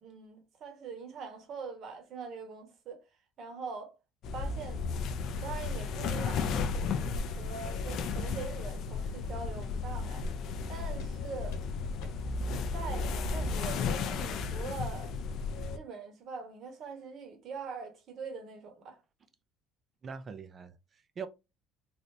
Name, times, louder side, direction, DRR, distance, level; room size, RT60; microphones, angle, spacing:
voice 1, 0.0-3.0 3.4-3.9 4.3-4.9 5.3-10.2 10.7-11.6 12.7-15.2 15.7-19.0, right 5 dB, 45° right, 1.1 m, -43 dB
sound 1, 4.2-15.8, left 4 dB, 50° left, 0.4 m, -34 dB
sound 2, 4.4-4.5 4.9-5.0 5.5-5.6 6.0-6.1 6.6-6.7 7.1-7.3 7.7-7.9 8.2-8.4 8.8-8.9 9.4-9.5 9.9-10.0 10.4-10.6 11.0-11.1 11.5-11.7 12.0-12.2 12.5-12.7, left 2 dB, 80° left, 1.2 m, -53 dB
voice 2, 20.0-21.3, right 6 dB, 30° right, 0.5 m, -43 dB
3.3 x 2.6 x 2.7 m
cardioid pair, 140°, 0 cm